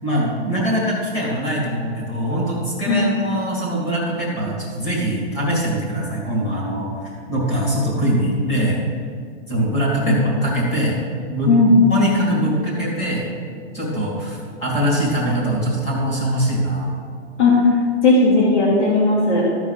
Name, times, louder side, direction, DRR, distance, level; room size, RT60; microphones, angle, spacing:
voice 1, 0.0-8.8 9.5-10.9 11.3-11.5 11.9-13.2 13.7-16.9, equal, 15° left, -5 dB, 2.2 m, -22 dB
voice 2, 18.0-19.4, left 3 dB, 75° left, -5 dB, 2.9 m, -16 dB
14.0 x 4.7 x 5.7 m, 2.1 s
hypercardioid pair, 180°, 35 cm